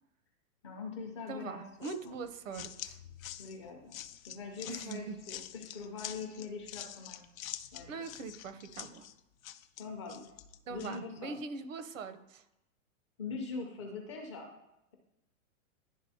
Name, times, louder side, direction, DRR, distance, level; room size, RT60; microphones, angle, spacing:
voice 1, 0.6-2.1 3.4-4.0 4.3-7.2 7.7-8.0 9.8-10.3 10.7-11.4 13.2-14.5, left 4 dB, 25° left, 1 dB, 0.5 m, -43 dB
voice 2, 1.3-3.0 4.7-5.2 7.9-9.1 10.7-12.4, right 4 dB, 65° right, 11 dB, 0.8 m, -42 dB
sound 1, 1.8-11.0, left 12 dB, 80° left, 0.6 m, -46 dB
11.5 x 3.8 x 2.7 m, 0.87 s
supercardioid pair, 175°, 41 cm